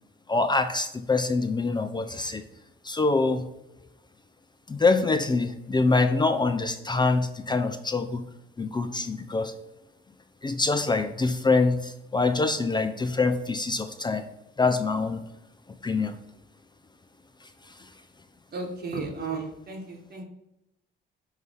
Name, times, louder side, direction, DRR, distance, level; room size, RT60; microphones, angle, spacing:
voice 1, 0.3-2.4 2.8-3.4 4.7-8.2 8.6-9.5 10.4-14.2 14.6-15.2 15.8-16.2, left 3 dB, 20° left, 8 dB, 0.5 m, -25 dB
voice 2, 18.5-20.2, right 4 dB, 55° right, 2 dB, 1.5 m, -34 dB
5.6 x 3.2 x 5.4 m, 0.90 s
cardioid pair, 90°, 20 cm